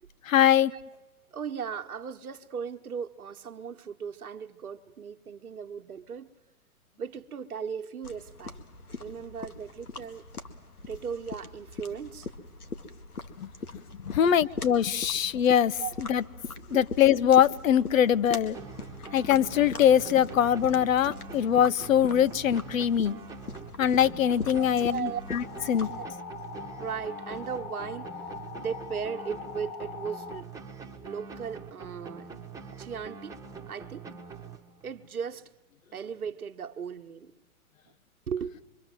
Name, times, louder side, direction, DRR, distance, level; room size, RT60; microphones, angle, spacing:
voice 1, 0.3-0.7 13.4-13.5 14.1-15.7 16.1-16.2 16.7-18.6 19.1-23.2 23.8-25.9, left 9 dB, 65° left, 0.9 m, -22 dB
voice 2, 1.3-6.3 7.0-8.6 9.0-10.2 10.9-12.3 14.2-14.5 15.8-15.9 16.7-16.9 24.6-25.2 25.6-26.1 26.8-30.5 31.0-32.3 32.7-33.4 33.7-34.1 34.8-35.5 35.9-37.3 38.3-38.6, right 7 dB, 75° right, 1.3 m, -37 dB
sound 1, 8.0-26.0, left 3 dB, 85° left, 2.2 m, -42 dB
sound 2, 18.5-35.1, right 5 dB, 10° right, 1.4 m, -44 dB
sound 3, 25.4-30.4, left 6 dB, 35° left, 1.6 m, -42 dB
25.0 x 24.0 x 7.6 m
hypercardioid pair, 120°, 43 cm